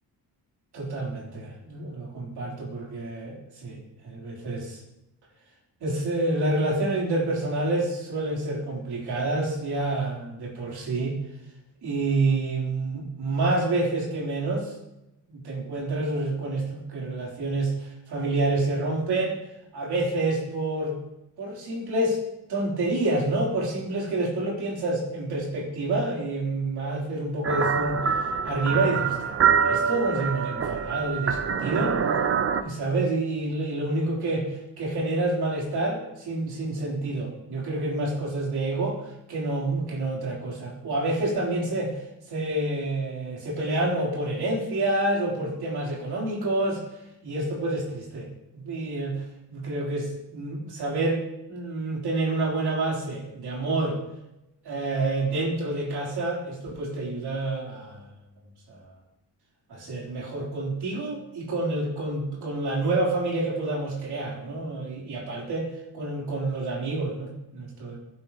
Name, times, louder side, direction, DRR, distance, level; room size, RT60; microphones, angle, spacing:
voice 1, 0.7-4.8 5.8-11.2 11.8-14.7 15.3-19.4 19.7-20.9 21.4-22.2 22.5-32.0 32.6-42.0 42.3-46.8 47.2-51.2 51.5-54.0 54.6-58.1 58.7-58.9 59.7-68.0, right 2 dB, 65° right, -4 dB, 3.7 m, -28 dB
sound 1, 27.4-32.6, right 6 dB, 35° right, 0.5 m, -25 dB
16.0 x 7.7 x 3.0 m, 0.90 s
wide cardioid pair, 180°, 43 cm